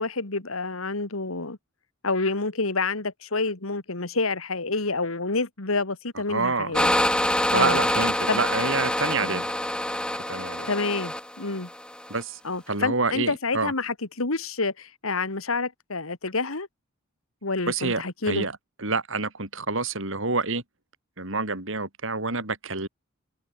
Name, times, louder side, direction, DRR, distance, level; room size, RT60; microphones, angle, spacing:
voice 1, 0.0-1.6 2.0-6.9 7.5-7.8 8.3-8.4 9.2-9.4 10.7-11.7 12.4-16.7 17.4-18.5, left 3 dB, 90° left, 2.3 m, -28 dB
voice 2, 6.3-6.7 7.5-9.5 10.3-10.7 12.1-12.4 12.7-13.7 17.7-18.5 18.8-20.6 21.2-22.9, right 3 dB, 70° right, 5.2 m, -27 dB
sound 1, 6.7-12.2, left 1 dB, 5° left, 1.5 m, -26 dB
head